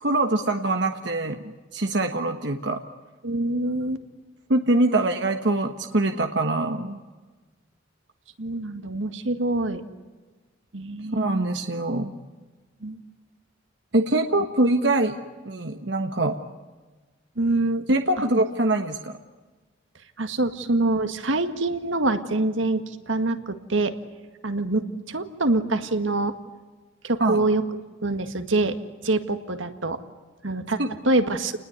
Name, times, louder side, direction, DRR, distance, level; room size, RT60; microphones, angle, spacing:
voice 1, 0.0-2.8 4.5-7.0 11.1-12.1 13.9-16.4 17.9-19.2 27.2-27.4 30.8-30.9, right 2 dB, 60° right, 5 dB, 1.4 m, -24 dB
voice 2, 3.2-4.0 8.4-9.8 10.7-11.4 12.8-13.0 17.4-17.8 20.2-23.9 24.4-26.3 27.0-27.6 28.0-28.8 29.0-30.0 30.4-30.8 31.0-31.5, right 2 dB, 80° right, 8 dB, 1.9 m, -25 dB
29.5 x 20.0 x 9.6 m, 1.3 s
head